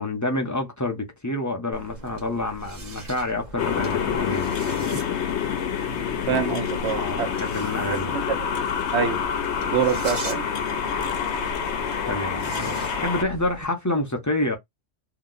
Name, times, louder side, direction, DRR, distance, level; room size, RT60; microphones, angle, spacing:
voice 1, 0.0-5.0 6.3-6.4 6.9-8.1 12.1-14.6, left 1 dB, 20° left, 0.7 m, -28 dB
sound 1, 1.7-13.6, right 2 dB, 45° right, 1.0 m, -40 dB
sound 2, 3.6-13.2, left 7 dB, 85° left, 0.9 m, -27 dB
voice 2, 6.3-7.3 7.9-8.2 8.9-9.2 9.7-10.4, right 7 dB, 75° right, 1.0 m, -25 dB
2.8 x 2.1 x 3.7 m
omnidirectional pair, 1.1 m